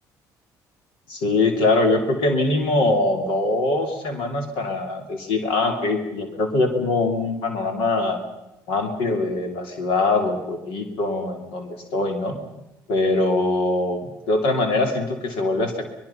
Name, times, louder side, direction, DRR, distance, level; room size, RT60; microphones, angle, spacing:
voice 1, 1.1-8.2 8.7-12.4 12.9-15.8, left 2 dB, 85° left, 5 dB, 2.9 m, -23 dB
24.0 x 21.5 x 5.7 m, 0.91 s
supercardioid pair, 75°, 8 cm